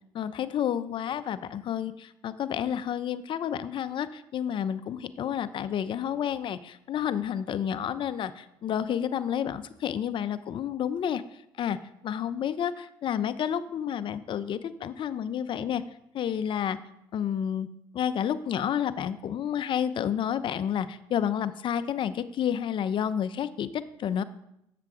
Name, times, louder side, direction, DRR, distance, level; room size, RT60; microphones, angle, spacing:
voice 1, 0.1-11.2 11.6-11.8 12.0-15.8 16.1-16.8 17.1-17.7 17.9-24.2, left 9 dB, 55° left, 13 dB, 0.5 m, -30 dB
7.4 x 6.7 x 3.6 m, 0.80 s
supercardioid pair, 70°, 10 cm